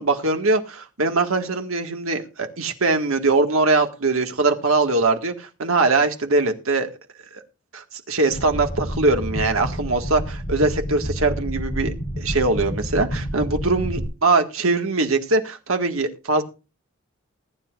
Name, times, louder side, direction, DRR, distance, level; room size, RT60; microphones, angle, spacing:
voice 1, 0.0-6.9 7.3-7.4 7.7-16.4, right 3 dB, 85° right, 5 dB, 1.9 m, -22 dB
sound 1, 8.3-14.0, equal, 25° left, 4.3 m, -29 dB
20.0 x 10.0 x 2.5 m, 0.30 s
head